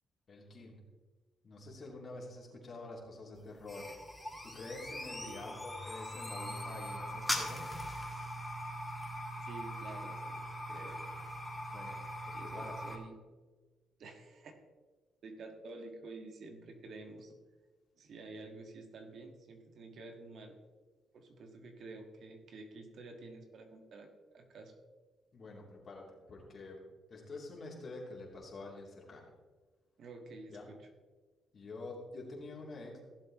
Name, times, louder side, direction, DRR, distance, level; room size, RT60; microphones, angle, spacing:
voice 1, 0.3-0.8 1.4-3.9 4.4-7.7 11.7-12.0 12.3-12.7 25.3-26.8 27.1-29.3 30.5-30.7 31.5-33.0, left 2 dB, 45° left, -2 dB, 3.1 m, -47 dB
sound 1, 3.4-13.0, equal, 10° left, 2.1 m, -41 dB
voice 2, 9.4-11.1 12.3-13.2 14.0-14.5 15.2-17.4 18.0-20.6 21.1-24.7 30.0-30.9, right 3 dB, 60° right, 4 dB, 1.6 m, -50 dB
16.5 x 7.6 x 3.1 m, 1.4 s
cardioid pair, 90°, 0 cm